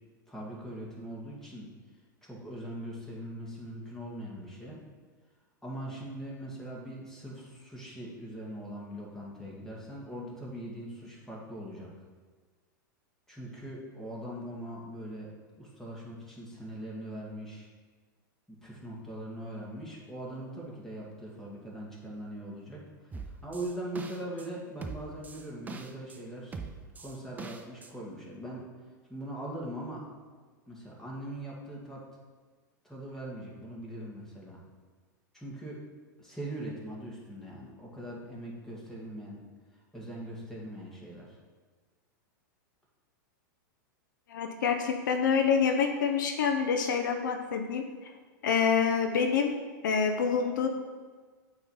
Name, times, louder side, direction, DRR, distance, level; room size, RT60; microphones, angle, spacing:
voice 1, 0.3-1.7 2.2-4.8 5.6-11.9 13.3-15.3 15.6-17.7 18.5-26.6 27.0-28.7 29.1-30.1 30.7-32.0 32.8-34.6 35.3-35.8 36.2-39.4 39.9-41.4, right 1 dB, 5° left, -5 dB, 1.8 m, -41 dB
sound 1, 23.1-24.5 24.8-26.2 26.5-27.9, right 4 dB, 15° right, 0.5 m, -42 dB
voice 2, 44.3-48.1 48.4-49.6 49.8-50.7, left 6 dB, 70° left, 5 dB, 0.6 m, -27 dB
7.7 x 3.1 x 5.5 m, 1.4 s
hypercardioid pair, 105°, 11 cm